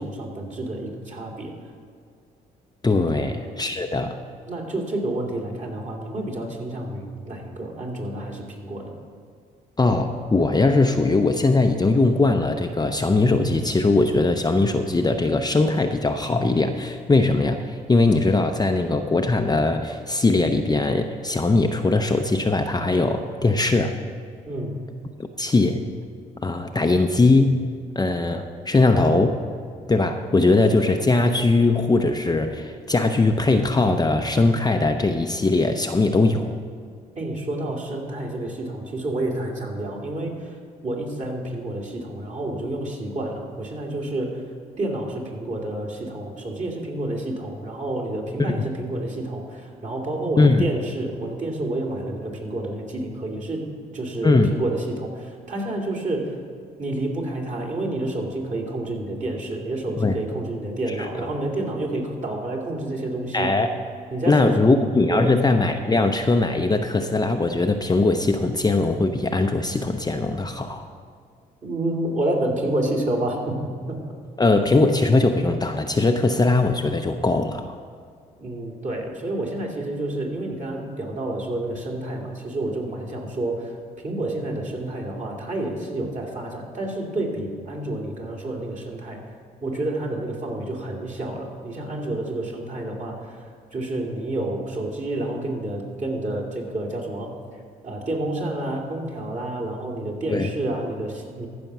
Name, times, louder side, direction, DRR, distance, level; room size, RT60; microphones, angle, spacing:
voice 1, 0.0-1.5 3.1-3.2 4.5-8.9 24.5-24.8 37.1-44.5 44.8-56.4 56.8-63.6 64.1-64.7 65.1-65.4 71.6-74.0 78.4-83.8 84.0-89.2 89.6-97.4 97.8-101.5, right 1 dB, 40° right, 0 dB, 2.5 m, -29 dB
voice 2, 2.8-4.2 9.8-23.9 25.4-25.8 26.4-27.6 28.0-29.4 29.9-36.6 50.4-50.7 54.2-54.6 60.0-60.2 61.0-61.1 63.3-63.7 64.2-70.9 74.4-77.8 100.3-100.5, left 3 dB, 20° left, 5 dB, 0.6 m, -20 dB
14.5 x 5.2 x 6.0 m, 2.1 s
hypercardioid pair, 55°, 20 cm